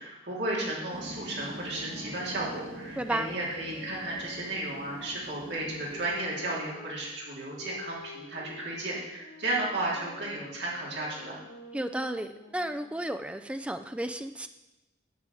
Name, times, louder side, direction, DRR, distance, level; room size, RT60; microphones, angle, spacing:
voice 1, 0.0-11.4, right 2 dB, 60° right, -5 dB, 3.1 m, -34 dB
sound 1, 0.9-6.2, equal, 80° right, 1.9 m, -45 dB
sound 2, 1.4-6.9 7.6-13.2, left 2 dB, 65° left, 1.5 m, -49 dB
voice 2, 3.0-3.3 11.7-14.5, right 1 dB, 5° right, 8 dB, 0.3 m, -33 dB
9.6 x 4.9 x 7.6 m, 1.0 s
head